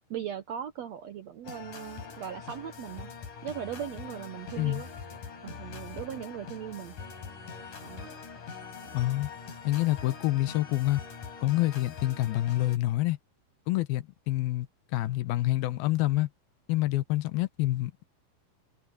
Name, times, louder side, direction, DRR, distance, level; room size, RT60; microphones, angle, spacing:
voice 1, 0.1-3.1 3.4-4.9 5.4-6.9 7.8-8.1 8.8-8.9, right 9 dB, 70° right, 1.6 m, -39 dB
sound 1, 1.4-12.8, left 5 dB, 60° left, 5.4 m, -43 dB
voice 2, 8.9-9.3 9.6-11.0 11.4-13.2 13.7-14.7 14.9-16.3 16.7-18.1, left 17 dB, 80° left, 2.7 m, -27 dB
omnidirectional pair, 4.3 m